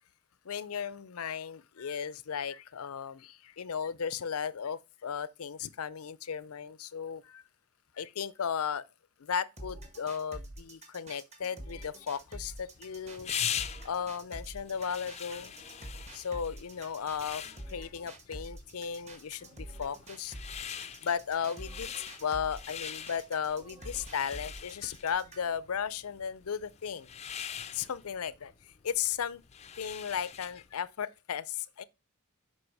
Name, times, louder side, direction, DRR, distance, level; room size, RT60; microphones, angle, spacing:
voice 1, 0.4-7.4 8.0-8.9 9.2-13.3 13.8-15.5 16.1-20.4 21.0-21.9 22.2-27.1 27.7-29.4 29.8-31.8, left 7 dB, 85° left, 0.5 m, -35 dB
sound 1, 9.6-25.6, right 1 dB, 30° right, 1.7 m, -46 dB
sound 2, 12.2-30.7, left 9 dB, 30° left, 0.4 m, -42 dB
7.9 x 5.5 x 4.7 m
head